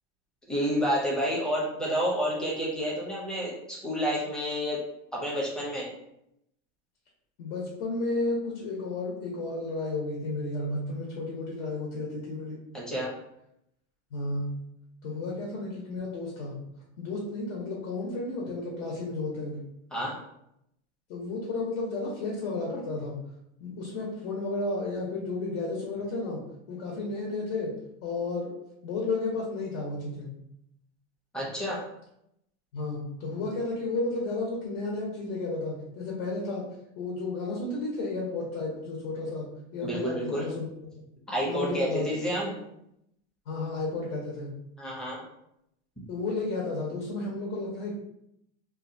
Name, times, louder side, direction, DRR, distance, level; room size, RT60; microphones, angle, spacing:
voice 1, 0.5-4.8 5.1-5.9 12.7-13.1 19.9-20.2 31.3-31.8 39.8-40.5 41.3-42.5 44.8-45.2, equal, ahead, -5 dB, 0.5 m, -29 dB
voice 2, 7.4-12.6 14.1-14.6 15.0-16.5 17.0-19.6 21.1-23.2 23.6-27.7 28.0-28.5 28.8-30.3 32.7-36.6 37.0-40.7 41.5-42.1 43.5-44.5 46.1-47.9, left 3 dB, 70° left, -3 dB, 0.9 m, -32 dB
2.7 x 2.2 x 2.6 m, 0.78 s
supercardioid pair, 145°, 37 cm